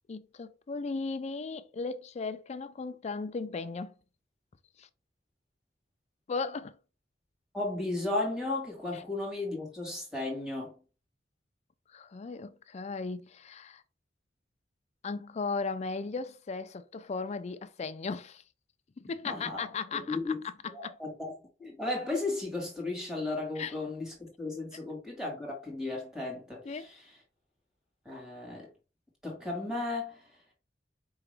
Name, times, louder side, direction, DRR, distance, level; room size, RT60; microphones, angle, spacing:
voice 1, 0.1-3.9 4.8-4.9 6.3-6.7 8.9-9.0 11.9-13.8 15.0-18.4 19.0-20.2 20.8-20.9 23.6-23.7 26.7-26.8, left 4 dB, 35° left, 0.4 m, -36 dB
voice 2, 7.5-10.7 19.2-19.7 19.9-20.4 20.7-27.1 28.0-28.7 29.2-30.3, left 2 dB, 5° right, 1.7 m, -35 dB
4.7 x 2.9 x 3.3 m
head